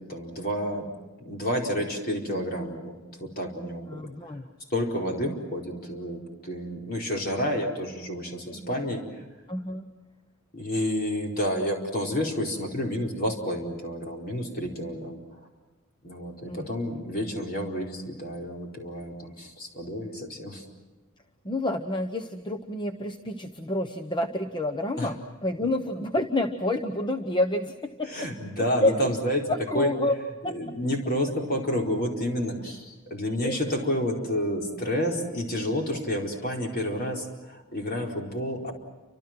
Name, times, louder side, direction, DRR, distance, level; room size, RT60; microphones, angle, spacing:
voice 1, 0.1-0.9 1.2-3.9 4.2-4.3 4.7-9.2 10.5-15.2 16.0-20.6 25.0-25.1 28.0-29.4 29.7-29.9 30.4-38.7, equal, 45° left, 0 dB, 4.6 m, -30 dB
voice 2, 3.9-4.5 8.7-8.8 9.5-9.9 16.5-17.0 21.4-28.3 28.8-28.9 29.5-30.2 30.4-30.5 33.4-33.6, left 1 dB, 20° left, 6 dB, 0.9 m, -29 dB
29.5 x 26.0 x 6.2 m, 1.2 s
head